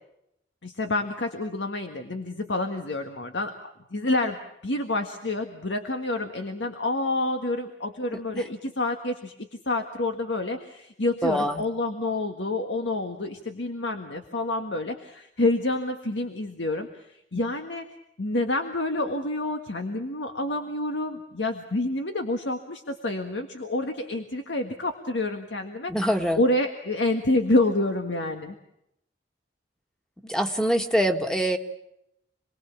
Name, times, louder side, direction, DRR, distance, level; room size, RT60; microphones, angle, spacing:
voice 1, 0.6-3.5 3.9-4.4 4.6-17.9 18.2-25.9 26.4-28.5, left 2 dB, 90° left, 5 dB, 1.7 m, -28 dB
voice 2, 8.1-8.5 11.2-11.6 25.9-26.4 30.2-31.6, equal, 5° left, 5 dB, 1.6 m, -25 dB
27.0 x 20.5 x 7.3 m, 0.80 s
head